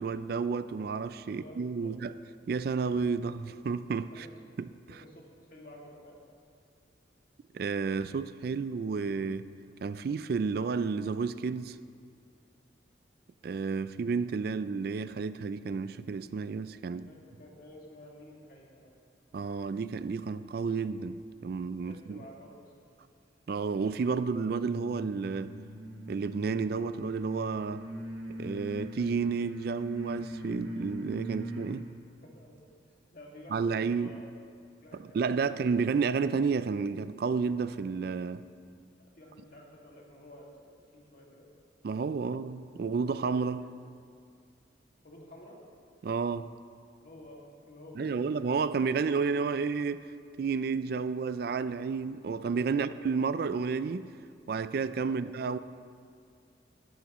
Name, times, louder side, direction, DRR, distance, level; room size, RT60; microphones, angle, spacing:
voice 1, 0.0-2.1 2.5-4.3 4.6-5.0 7.5-9.5 9.8-11.8 13.4-17.1 19.3-22.2 23.5-25.5 26.1-27.9 28.4-31.9 33.5-34.1 35.1-38.5 41.8-43.6 46.0-46.5 48.0-50.1 50.4-54.1 54.5-55.6, right 5 dB, 55° right, 0.3 m, -31 dB
voice 2, 1.3-2.0 4.1-4.3 4.9-6.2 16.9-18.9 21.9-22.9 32.2-32.6 32.8-34.3 34.8-35.6 39.1-41.5 42.2-42.6 45.0-45.6 47.0-48.3 52.5-52.9 55.1-55.2, left 1 dB, 50° left, 2.1 m, -52 dB
sound 1, 24.4-31.8, equal, 90° right, 2.0 m, -41 dB
16.5 x 12.5 x 3.0 m
head